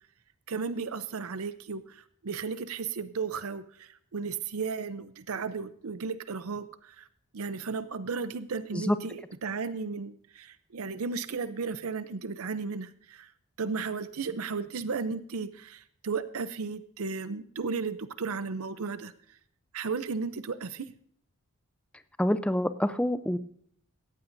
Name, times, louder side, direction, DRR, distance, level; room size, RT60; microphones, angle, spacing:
voice 1, 0.5-7.0 7.3-13.3 13.6-19.1 19.7-20.9, right 5 dB, 75° right, 13 dB, 0.6 m, -34 dB
voice 2, 22.2-23.4, equal, 5° left, 12 dB, 0.4 m, -26 dB
17.5 x 14.5 x 2.6 m, 0.63 s
head